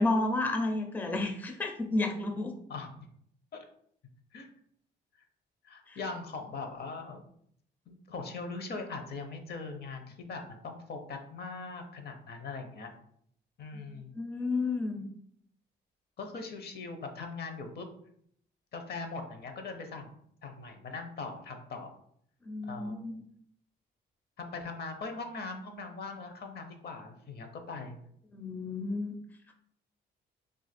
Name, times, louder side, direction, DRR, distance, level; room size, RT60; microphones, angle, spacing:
voice 1, 0.0-2.5 5.9-6.0 13.7-15.0 22.4-23.2 28.3-29.2 29.5-29.6, left 2 dB, 10° left, 4 dB, 0.4 m, -31 dB
voice 2, 2.7-3.1 3.5-3.7 4.3-4.5 5.1-5.2 5.6-7.3 7.9-12.9 13.6-14.1 16.2-17.9 18.7-20.1 20.4-22.0 22.6-23.0 24.4-28.0, left 4 dB, 55° left, 6 dB, 0.6 m, -41 dB
2.5 x 2.4 x 4.1 m, 0.67 s
cardioid pair, 90°, 20 cm